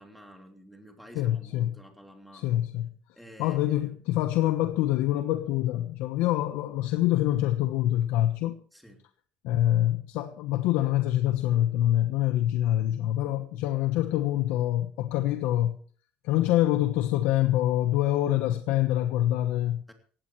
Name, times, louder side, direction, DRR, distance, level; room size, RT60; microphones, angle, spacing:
voice 1, 0.0-2.6 3.1-4.0 8.7-9.0 19.9-20.0, equal, ahead, 3.1 m, -51 dB
voice 2, 1.1-1.7 2.3-2.9 3.4-8.6 9.4-15.8 16.2-19.8, left 13 dB, 90° left, 1.1 m, -25 dB
17.5 x 16.0 x 3.2 m
cardioid pair, 135°, 3 cm